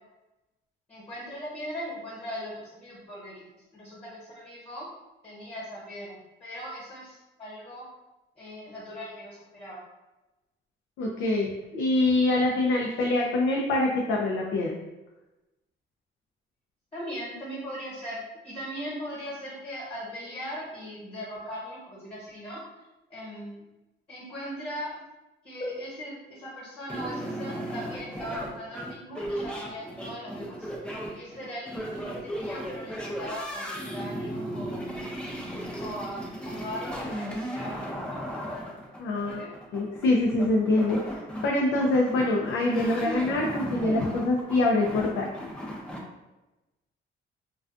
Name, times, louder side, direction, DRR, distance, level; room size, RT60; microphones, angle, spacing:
voice 1, 0.9-3.4 3.7-4.8 5.2-7.8 8.4-9.8 16.9-22.6 23.1-23.6 24.1-24.9 25.4-30.7 31.1-35.1 35.8-36.2 36.4-38.2 39.1-39.5, equal, 30° left, -6 dB, 1.1 m, -39 dB
voice 2, 11.0-14.8 39.0-45.3, left 2 dB, 80° left, -1 dB, 0.4 m, -25 dB
sound 1, 26.9-46.0, equal, 5° left, 0.4 m, -36 dB
2.4 x 2.3 x 2.4 m, 1.0 s
cardioid pair, 90°, 20 cm